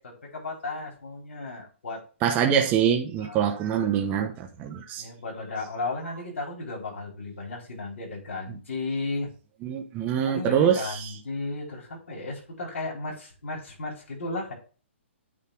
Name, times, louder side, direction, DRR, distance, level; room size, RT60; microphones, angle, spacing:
voice 1, 0.0-2.0 3.2-3.4 4.9-9.3 10.2-14.5, left 3 dB, 80° left, 4.6 m, -34 dB
voice 2, 2.2-5.0 9.6-11.1, right 8 dB, 25° right, 0.9 m, -24 dB
8.5 x 3.3 x 6.3 m
hypercardioid pair, 145°, 7 cm